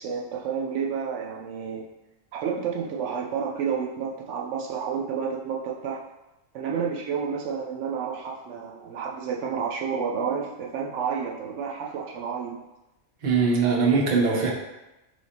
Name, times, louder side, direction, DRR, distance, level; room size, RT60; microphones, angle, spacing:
voice 1, 0.0-1.9 2.3-6.0 6.5-12.6, right 6 dB, 75° right, -1 dB, 0.9 m, -30 dB
voice 2, 13.2-14.5, right 4 dB, 45° right, -2 dB, 0.7 m, -21 dB
3.3 x 3.1 x 4.1 m, 0.98 s
omnidirectional pair, 1.3 m